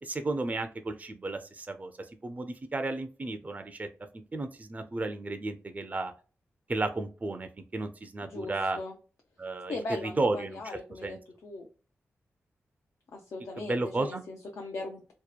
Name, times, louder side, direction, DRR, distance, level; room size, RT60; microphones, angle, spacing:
voice 1, 0.0-1.9 2.2-3.9 4.3-6.1 6.7-8.8 9.4-10.6 11.0-11.2 13.6-14.2, right 2 dB, 30° right, 7 dB, 0.4 m, -33 dB
voice 2, 8.2-9.0 9.7-11.2 11.4-11.7 13.1-15.1, left 2 dB, 75° left, 1 dB, 0.5 m, -39 dB
2.8 x 2.1 x 2.2 m, 0.36 s
cardioid pair, 45°, 5 cm